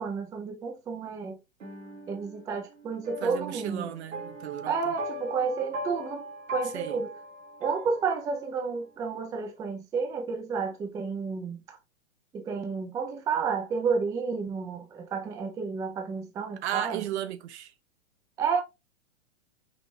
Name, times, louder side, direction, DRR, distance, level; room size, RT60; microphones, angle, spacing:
voice 1, 0.0-1.4 2.1-3.9 4.6-6.2 6.5-7.1 7.6-11.6 12.3-17.0 18.4-18.6, right 5 dB, 10° right, 0.4 m, -31 dB
sound 1, 1.6-8.6, equal, 90° right, 2.0 m, -40 dB
voice 2, 3.2-5.0 6.7-7.0 16.6-17.7, right 11 dB, 60° right, 0.8 m, -35 dB
5.4 x 3.0 x 2.6 m
hypercardioid pair, 125°, 37 cm